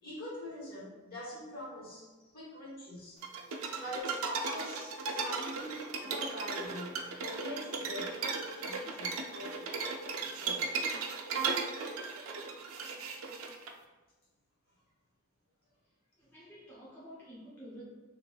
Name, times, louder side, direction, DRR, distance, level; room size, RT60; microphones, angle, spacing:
voice 1, 0.0-2.1 2.3-3.2 3.8-10.7, left 1 dB, 45° left, -7 dB, 1.1 m, -44 dB
sound 1, 3.2-13.7, right 4 dB, 90° right, 0.4 m, -36 dB
voice 2, 16.2-17.8, equal, 10° left, -10 dB, 0.7 m, -51 dB
3.1 x 2.9 x 2.3 m, 1.2 s
head